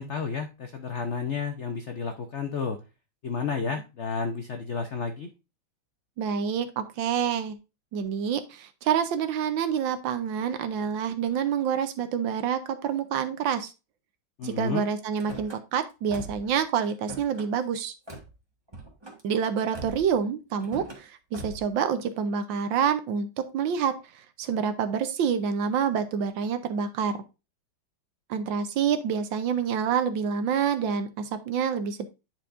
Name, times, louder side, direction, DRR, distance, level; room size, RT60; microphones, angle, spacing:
voice 1, 0.0-2.8 3.2-5.3 14.4-14.8, left 5 dB, 80° left, 6 dB, 0.6 m, -31 dB
voice 2, 6.2-7.6 7.9-13.7 14.4-17.9 19.2-23.3 23.5-23.9 24.4-27.2 28.3-32.1, right 7 dB, 75° right, 10 dB, 1.4 m, -27 dB
Car / Slam, 15.1-15.6 16.1-16.5 16.8-17.5 18.1-18.3 18.7-19.2 19.7-20.1 20.6-21.0 21.3-21.7, right 2 dB, 15° right, 1.2 m, -41 dB
10.0 x 4.5 x 2.5 m, 0.27 s
omnidirectional pair, 2.2 m